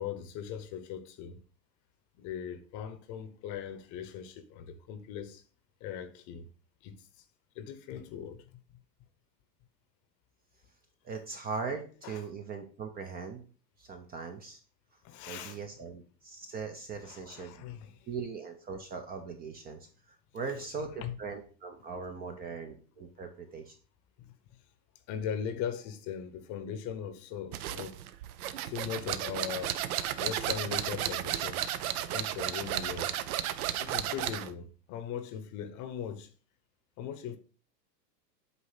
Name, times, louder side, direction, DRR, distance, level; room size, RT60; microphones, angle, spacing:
voice 1, 0.0-1.4 2.2-5.4 5.8-6.5 6.8-7.2 7.5-8.5 12.0-12.2 15.0-15.6 17.0-18.1 20.5-20.7 21.0-21.2 24.2-24.3 25.1-28.0 28.6-29.8 30.2-31.7 32.1-33.2 33.8-36.3 37.0-37.4, left 8 dB, 35° left, 0.9 m, -39 dB
voice 2, 11.0-13.4 13.8-14.6 15.3-17.7 18.1-19.8 20.3-23.7, right 5 dB, 20° right, 0.6 m, -40 dB
sound 1, 27.5-34.5, right 11 dB, 60° right, 0.7 m, -33 dB
8.0 x 2.8 x 5.6 m
hypercardioid pair, 125°, 50 cm